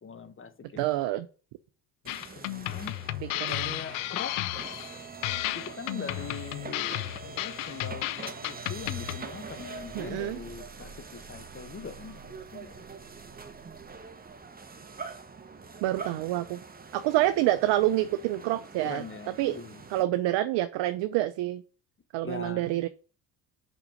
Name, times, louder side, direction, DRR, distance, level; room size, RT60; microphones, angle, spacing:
voice 1, 0.0-0.8 2.0-3.0 3.5-4.4 5.5-12.2 12.5-12.9 18.8-19.8 22.2-22.7, left 5 dB, 25° left, 1.1 m, -42 dB
voice 2, 0.8-1.3 3.2-3.7 9.9-10.4 15.8-16.6 16.9-19.0 19.4-19.6 19.9-21.6 22.1-22.9, right 15 dB, 65° right, 0.6 m, -27 dB
sound 1, 2.0-20.0, right 4 dB, 20° right, 1.0 m, -44 dB
sound 2, 2.1-9.2, left 17 dB, 75° left, 0.6 m, -33 dB
5.9 x 5.3 x 5.1 m
hypercardioid pair, 65°, 47 cm